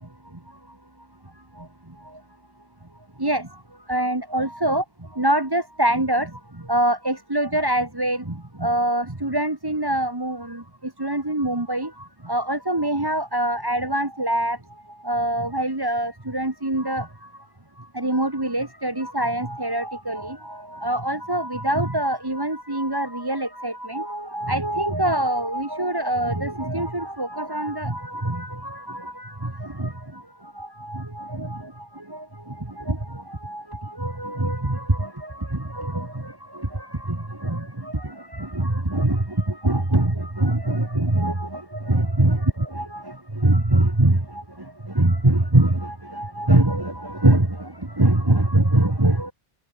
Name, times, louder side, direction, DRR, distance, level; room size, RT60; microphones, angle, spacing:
voice 1, 3.2-3.6 3.9-4.8 5.1-14.6 14.9-17.3 17.8-49.3, right 1 dB, 20° right, 2.0 m, -24 dB
omnidirectional pair, 1.3 m